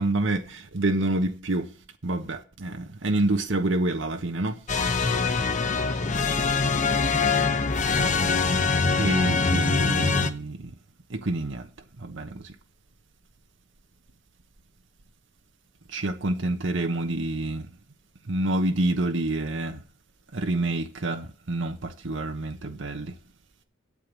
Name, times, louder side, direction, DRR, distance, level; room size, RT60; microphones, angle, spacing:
voice 1, 0.0-1.7 2.0-4.6 9.0-10.7 11.1-11.7 12.0-12.4 15.9-17.7 18.3-19.8 20.3-23.1, right 2 dB, 75° right, 1.1 m, -27 dB
sound 1, 4.7-10.3, left 4 dB, 40° left, 1.0 m, -23 dB
8.5 x 7.8 x 8.4 m
head